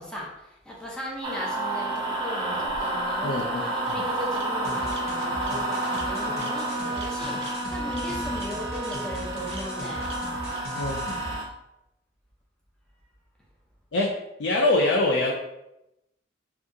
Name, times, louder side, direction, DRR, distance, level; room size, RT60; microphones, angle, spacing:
voice 1, 0.0-10.1, equal, 5° left, -3 dB, 0.6 m, -38 dB
sound 1, 1.2-11.4, right 1 dB, 30° right, 0.8 m, -30 dB
Bird vocalization bird call bird song, 2.4-3.2 3.8-3.9 4.3-4.4 4.9-5.0 5.4-5.5 5.9-6.1 6.4-6.5 6.9-7.1 7.4-7.5 7.9-8.0 8.3-8.5 8.9-9.0 9.5-9.6 10.1-10.2 10.5-10.6, right 5 dB, 65° right, 0.6 m, -43 dB
voice 2, 3.2-3.6 10.7-11.2 13.9-14.1 14.4-15.3, left 2 dB, 75° left, -1 dB, 0.4 m, -24 dB
sound 2, 4.6-11.4, left 1 dB, 55° left, 0.8 m, -39 dB
2.7 x 2.4 x 3.6 m, 0.88 s
head